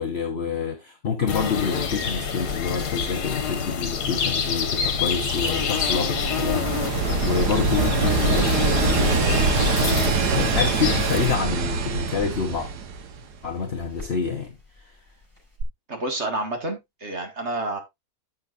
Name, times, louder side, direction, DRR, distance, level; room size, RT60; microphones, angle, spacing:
voice 1, 0.0-12.7 13.4-15.0, left 6 dB, 45° left, 1.2 m, -28 dB
sound 1, 1.3-11.4, left 6 dB, 75° left, 1.8 m, -27 dB
sound 2, 5.0-13.5 15.6-15.7, right 5 dB, 85° right, 1.6 m, -24 dB
sound 3, 10.1-15.6, left 3 dB, 10° right, 6.2 m, -46 dB
voice 2, 15.9-17.8, right 2 dB, 45° right, 2.1 m, -29 dB
11.5 x 7.3 x 2.5 m
omnidirectional pair, 1.7 m